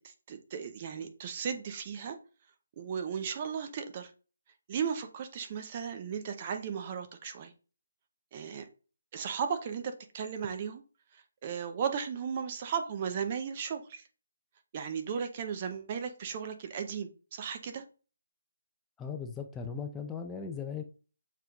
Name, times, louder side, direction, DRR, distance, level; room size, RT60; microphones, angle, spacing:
voice 1, 0.0-2.2 2.8-4.1 4.7-7.5 8.3-8.7 9.1-10.8 11.1-14.0 14.7-17.8, right 7 dB, 35° right, 7 dB, 0.6 m, -36 dB
voice 2, 19.0-20.8, left 6 dB, 10° left, 3 dB, 0.4 m, -38 dB
6.8 x 3.0 x 2.3 m, 0.36 s
figure-of-eight pair, 155°, 0 cm